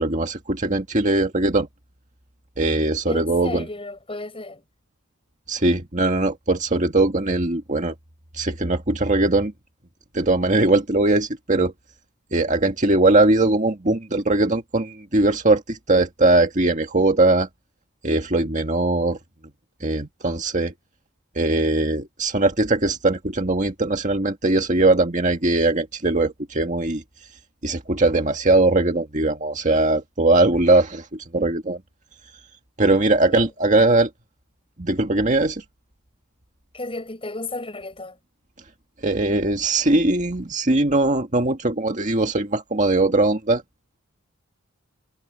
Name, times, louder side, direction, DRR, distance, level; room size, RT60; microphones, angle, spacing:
voice 1, 0.0-1.7 2.6-3.7 5.5-7.9 8.4-9.5 10.1-11.7 12.3-17.5 18.0-19.2 19.8-20.7 21.4-27.0 27.6-31.8 32.8-34.1 34.8-35.6 39.0-43.6, right 2 dB, 35° right, 1.9 m, -20 dB
voice 2, 3.1-4.6 33.3-33.5 36.7-38.2, left 2 dB, 25° left, 7.5 m, -33 dB
head